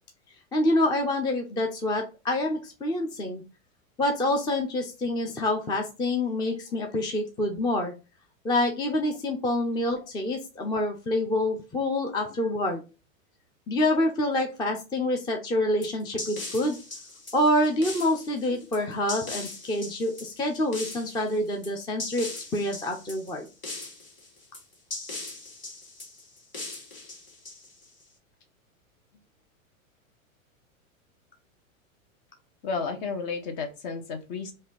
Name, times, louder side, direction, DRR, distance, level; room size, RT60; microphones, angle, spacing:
voice 1, 0.5-3.4 4.0-7.9 8.4-12.8 13.7-16.8 17.3-23.5, left 1 dB, 10° left, 3 dB, 0.5 m, -27 dB
sound 1, 15.8-28.0, left 2 dB, 30° left, 2.1 m, -40 dB
voice 2, 32.6-34.5, left 4 dB, 45° left, 6 dB, 1.2 m, -33 dB
4.1 x 2.7 x 3.9 m, 0.30 s
hypercardioid pair, 120°, 41 cm